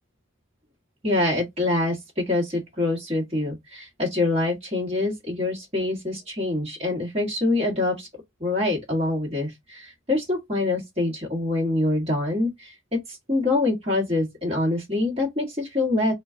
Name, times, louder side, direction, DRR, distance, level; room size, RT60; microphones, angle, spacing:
voice 1, 1.0-8.1 8.4-16.1, left 2 dB, 30° right, 1.4 m, -25 dB
3.8 x 2.3 x 3.6 m
head